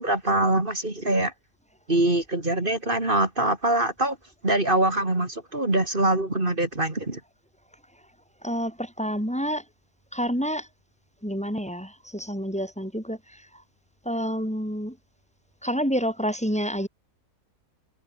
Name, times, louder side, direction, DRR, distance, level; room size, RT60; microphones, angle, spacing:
voice 1, 0.0-1.3 1.9-4.2 4.4-7.2, right 1 dB, 30° right, 3.6 m, -24 dB
voice 2, 8.4-9.6 10.1-10.7 11.2-13.5 14.0-15.0 15.6-16.9, equal, 5° left, 6.6 m, -28 dB
omnidirectional pair, 1.7 m